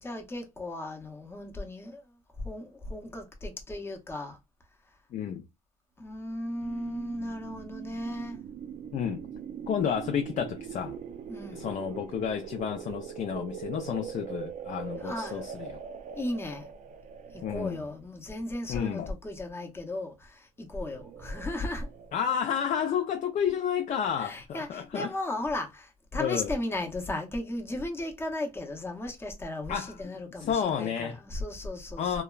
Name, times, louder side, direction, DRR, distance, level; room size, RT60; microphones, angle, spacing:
voice 1, 0.0-4.4 6.0-8.4 11.3-11.7 12.9-13.0 15.0-15.4 16.1-16.7 17.3-21.9 24.2-32.2, left 1 dB, 15° left, 0.7 m, -36 dB
voice 2, 5.1-5.4 8.9-9.2 9.7-11.0 11.5-15.7 17.4-17.8 18.7-19.1 22.1-25.1 26.2-26.5 29.7-30.0 30.4-31.2 32.0-32.2, left 8 dB, 45° left, 0.4 m, -31 dB
sound 1, 6.4-18.0 20.8-22.2, right 8 dB, 45° right, 0.4 m, -42 dB
2.8 x 2.2 x 2.2 m
cardioid pair, 110°, 17 cm